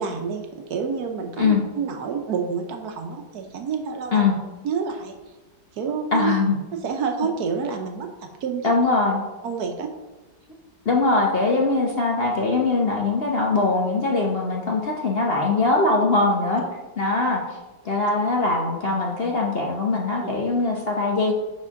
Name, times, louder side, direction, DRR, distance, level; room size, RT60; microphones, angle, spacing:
voice 1, 0.0-4.3 4.6-5.1 5.8-6.3 6.7-8.1 8.4-8.8 9.4-9.9, right 6 dB, 65° right, 3 dB, 1.2 m, -28 dB
voice 2, 6.1-6.6 8.6-9.2 10.8-16.6 17.0-17.4 17.8-21.3, left 3 dB, 45° left, -1 dB, 0.8 m, -21 dB
5.9 x 4.4 x 5.8 m, 1.1 s
omnidirectional pair, 1.9 m